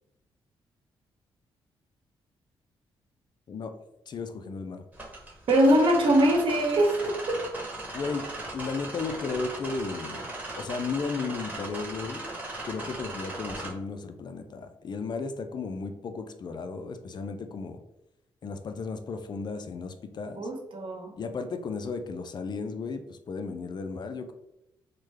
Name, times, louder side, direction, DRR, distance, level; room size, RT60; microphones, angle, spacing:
voice 1, 4.1-4.8 7.9-8.3 8.5-12.2 12.6-17.8 18.4-20.4 21.2-24.3, left 4 dB, 50° left, 8 dB, 0.4 m, -34 dB
sound 1, 4.9-13.7, right 2 dB, 15° right, 1.2 m, -38 dB
voice 2, 5.5-7.4 20.4-21.1, right 1 dB, 60° right, 1 dB, 0.8 m, -22 dB
3.2 x 2.1 x 3.2 m, 0.87 s
cardioid pair, 75°, 10 cm